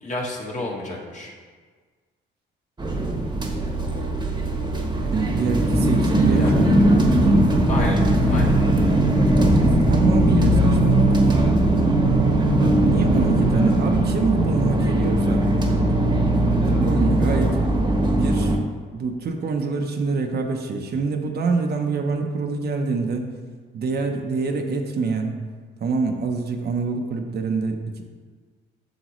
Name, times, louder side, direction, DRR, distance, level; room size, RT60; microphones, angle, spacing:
voice 1, 0.0-1.3 6.3-6.6 7.7-8.6 17.3-17.6, left 2 dB, 40° left, -2 dB, 1.7 m, -30 dB
sound 1, 2.8-18.6, right 1 dB, 20° right, 1.2 m, -19 dB
voice 2, 5.1-7.5 9.3-11.1 12.6-15.5 15.9-16.0 16.8-17.6 18.1-18.6 18.9-23.3 23.7-25.4 25.8-28.0, right 4 dB, 55° right, 3 dB, 0.9 m, -25 dB
8.0 x 6.2 x 3.1 m, 1.5 s
cardioid pair, 90°, 20 cm